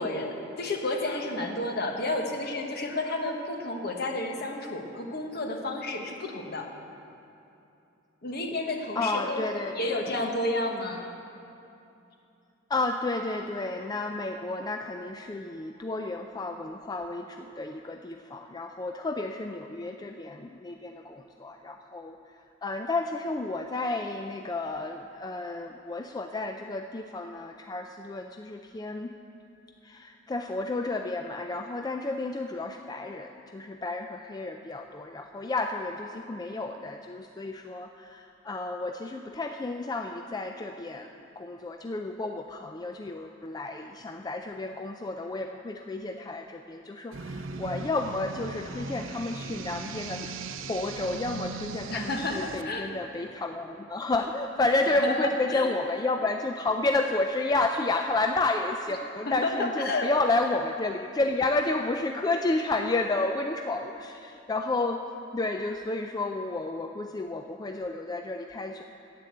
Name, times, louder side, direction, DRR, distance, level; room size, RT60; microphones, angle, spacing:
voice 1, 0.0-6.7 8.2-11.0 51.9-52.9 55.0-55.7 59.3-60.1, left 2 dB, 55° left, 2 dB, 1.2 m, -31 dB
voice 2, 9.0-10.0 12.7-22.2 22.6-29.2 29.8-50.3 50.5-65.1 65.3-68.8, left 2 dB, 20° left, 5 dB, 0.3 m, -31 dB
sound 1, 47.1-52.6, right 3 dB, 85° right, 0.6 m, -38 dB
10.0 x 8.5 x 7.9 m, 2.8 s
head